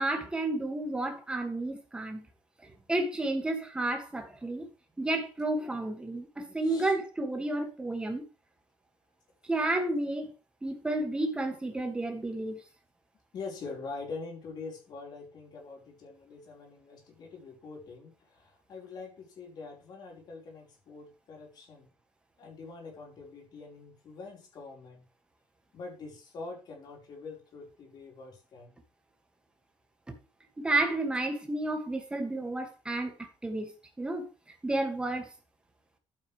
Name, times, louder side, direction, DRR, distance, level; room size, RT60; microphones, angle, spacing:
voice 1, 0.0-2.3 2.6-4.7 5.0-8.2 9.5-10.3 10.6-12.6 30.1-30.2 30.6-33.7 34.0-34.3 34.6-35.3, right 2 dB, 10° right, 2.3 m, -31 dB
voice 2, 6.6-6.9 13.3-21.9 22.4-25.0 25.7-28.8, left 4 dB, 45° left, 5.0 m, -44 dB
12.0 x 9.1 x 3.5 m
cardioid pair, 170°, 10 cm